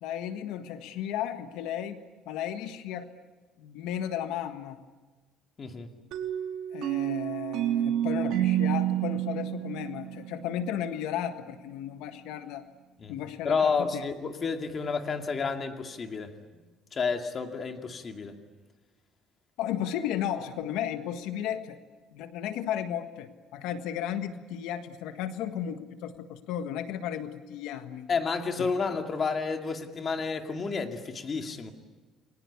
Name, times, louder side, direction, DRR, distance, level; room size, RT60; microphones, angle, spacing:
voice 1, 0.0-3.1 3.6-4.8 6.7-12.6 13.1-14.0 19.6-21.8 22.1-28.1 28.6-28.7, left 10 dB, 80° left, 9 dB, 1.6 m, -34 dB
voice 2, 5.6-5.9 13.0-13.1 13.4-16.3 16.9-18.4 28.1-31.7, left 5 dB, 30° left, 5 dB, 2.4 m, -30 dB
sound 1, 6.1-10.8, right 12 dB, 70° right, 3.8 m, -29 dB
29.5 x 23.0 x 8.4 m, 1.3 s
cardioid pair, 150°, 0 cm